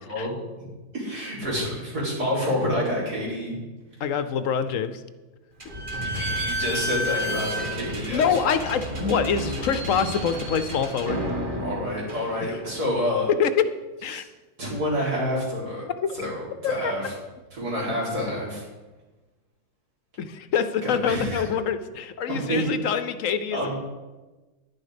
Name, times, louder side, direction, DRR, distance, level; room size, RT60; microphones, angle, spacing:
voice 1, 0.9-3.5 6.2-8.5 11.6-13.3 14.1-14.2 14.6-15.8 16.1-17.1 17.5-18.6 20.8-21.4 22.3-22.6 23.5-23.7, left 1 dB, 85° right, -5 dB, 4.6 m, -28 dB
voice 2, 4.0-5.0 8.1-11.2 12.5-12.6 13.4-13.6 14.0-14.2 16.0-16.3 16.6-16.9 20.2-23.7, left 7 dB, 65° left, 12 dB, 1.0 m, -25 dB
Slam / Squeak, 5.6-12.9, equal, 35° right, 1.7 m, -31 dB
10.5 x 10.5 x 5.1 m, 1.2 s
omnidirectional pair, 1.6 m